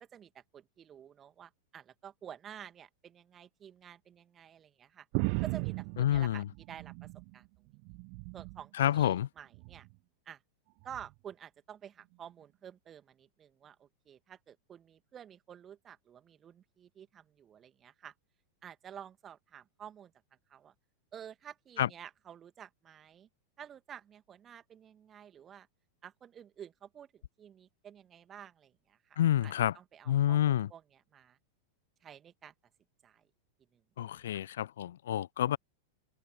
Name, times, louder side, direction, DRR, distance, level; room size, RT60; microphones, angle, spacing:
voice 1, 0.0-5.1 5.4-7.5 8.3-9.9 10.3-10.4 10.8-18.1 18.6-20.1 20.5-20.7 21.1-23.3 23.6-25.7 26.0-31.4 32.0-32.5 33.0-33.3 33.7-33.8 34.1-34.4, right 9 dB, 25° right, 2.3 m, -51 dB
sound 1, 5.1-7.4 7.7-8.7 9.5-9.9 10.9-11.1, right 40 dB or more, 45° right, 0.7 m, -36 dB
voice 2, 6.0-6.4 8.8-9.3 21.8-21.9 29.2-29.7 30.1-30.7 34.0-35.6, left 11 dB, 60° left, 0.6 m, -28 dB
figure-of-eight pair, 90°, 0 cm